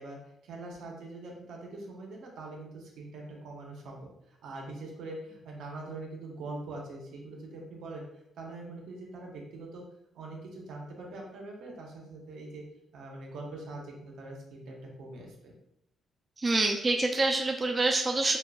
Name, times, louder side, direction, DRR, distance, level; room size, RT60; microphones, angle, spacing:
voice 1, 0.0-8.0 8.4-9.8 10.1-12.6 12.9-15.5, right 2 dB, 80° right, -1 dB, 1.0 m, -43 dB
voice 2, 16.4-18.4, right 2 dB, 25° right, 3 dB, 0.4 m, -26 dB
5.3 x 2.4 x 2.3 m, 0.78 s
cardioid pair, 90°, 0 cm